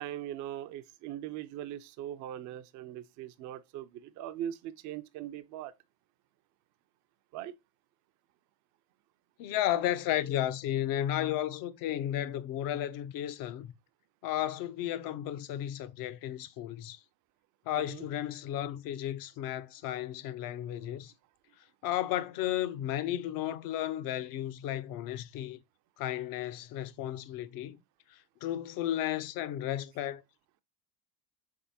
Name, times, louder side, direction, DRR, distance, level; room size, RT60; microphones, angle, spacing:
voice 1, 0.0-5.7 7.3-7.5 17.8-18.1, right 11 dB, 45° right, 0.4 m, -40 dB
voice 2, 9.4-13.7 14.2-17.0 17.7-21.1 21.8-25.6 26.0-27.8 28.1-30.2, left 12 dB, 50° left, 0.5 m, -33 dB
3.5 x 3.5 x 2.6 m
supercardioid pair, 85°, 43 cm